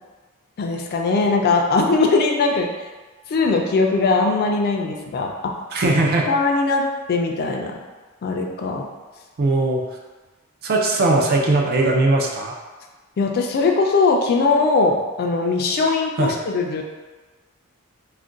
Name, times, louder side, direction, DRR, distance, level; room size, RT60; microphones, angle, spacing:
voice 1, 0.6-2.7 3.3-5.5 5.8-6.0 6.3-7.8 8.2-8.9 13.2-16.8, left 3 dB, 45° left, 2 dB, 0.3 m, -20 dB
voice 2, 5.7-6.3 9.4-9.8 10.6-12.5 16.2-16.3, right 2 dB, 45° right, 0 dB, 0.4 m, -19 dB
2.4 x 2.2 x 3.7 m, 1.3 s
head